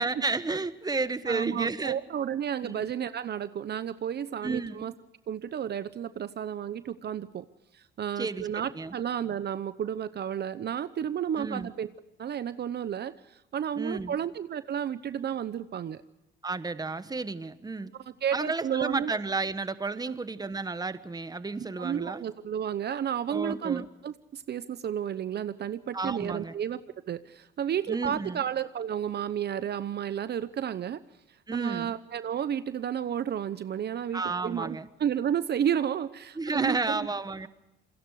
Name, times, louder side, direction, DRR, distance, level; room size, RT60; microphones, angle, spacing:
voice 1, 0.0-1.9 2.6-2.9 4.4-4.7 8.2-8.5 8.7-8.9 11.4-11.7 13.8-14.2 16.4-17.9 18.3-22.2 23.3-23.9 25.9-26.5 27.9-28.4 31.5-31.9 34.1-34.9 36.4-37.5, right 3 dB, 20° right, 13 dB, 1.3 m, -32 dB
voice 2, 1.3-4.9 5.3-7.5 7.7-11.9 12.2-16.0 18.2-19.1 20.1-20.2 21.6-26.8 27.1-31.0 31.5-37.0, right 9 dB, 55° right, 14 dB, 0.9 m, -32 dB
27.5 x 21.0 x 4.8 m, 0.91 s
cardioid pair, 90°, 20 cm